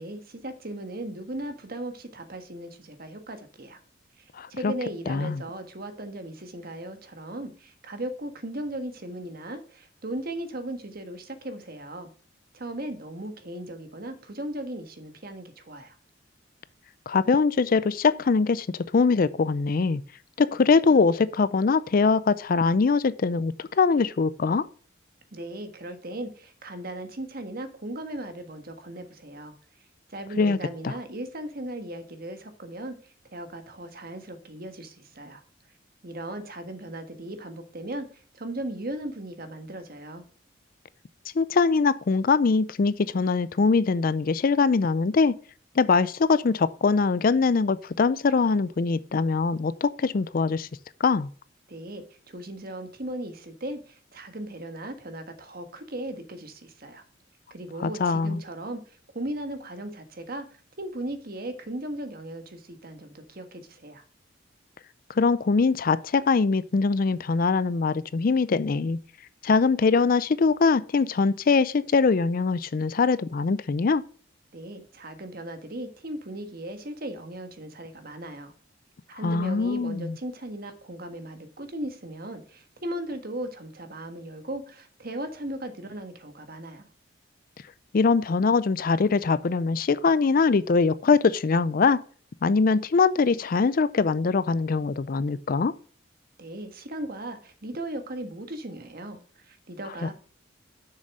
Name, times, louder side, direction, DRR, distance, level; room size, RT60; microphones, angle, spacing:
voice 1, 0.0-3.8 4.2-4.3 4.5-12.1 12.5-16.0 25.3-29.5 30.1-35.4 36.0-40.2 51.7-57.0 57.5-60.5 60.8-64.0 74.5-78.5 79.1-86.9 96.4-100.1, right 1 dB, 50° right, 1.5 m, -37 dB
voice 2, 4.4-4.7 5.1-5.4 17.1-20.0 20.4-24.7 30.4-30.6 30.8-30.9 41.4-45.3 45.8-50.7 51.0-51.3 57.8-58.4 65.2-69.0 69.4-74.0 79.2-80.1 87.9-92.0 92.4-95.7 100.0-100.1, left 4 dB, 45° left, 0.4 m, -22 dB
7.0 x 6.5 x 6.3 m
head